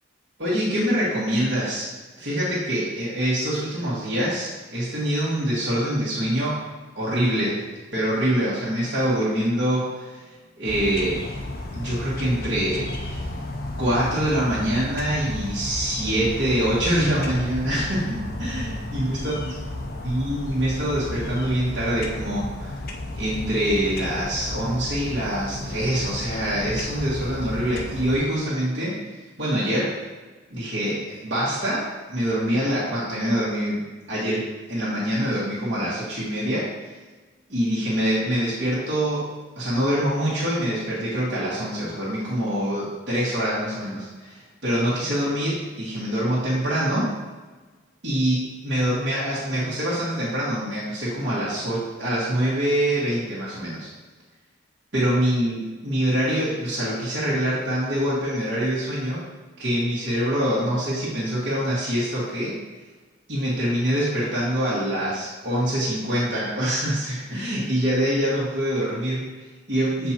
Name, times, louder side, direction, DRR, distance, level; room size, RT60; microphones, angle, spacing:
voice 1, 0.4-1.9 2.2-6.7 6.9-7.7 7.9-10.2 10.6-11.3 11.7-13.3 13.8-19.5 20.0-22.8 23.2-30.0 30.5-36.9 37.5-47.1 48.0-53.9 54.9-59.2 59.6-62.6 63.3-70.1, equal, 60° right, -10 dB, 1.7 m, -25 dB
sound 1, 10.7-28.2, left 1 dB, 50° left, 0.6 m, -33 dB
7.5 x 5.0 x 2.9 m, 1.3 s
head